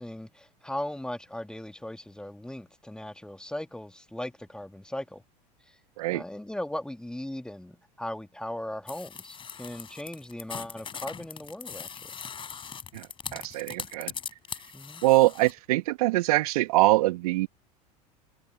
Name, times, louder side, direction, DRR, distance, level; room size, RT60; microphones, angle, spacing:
voice 1, 0.0-5.2 5.7-5.8 6.1-12.1 14.7-15.0, left 1 dB, 5° left, 2.4 m, -38 dB
sound 1, 8.9-15.5, left 6 dB, 25° left, 4.1 m, -40 dB
voice 2, 13.3-14.1 15.0-17.5, right 19 dB, 60° right, 1.8 m, -23 dB
figure-of-eight pair, 75°, 21 cm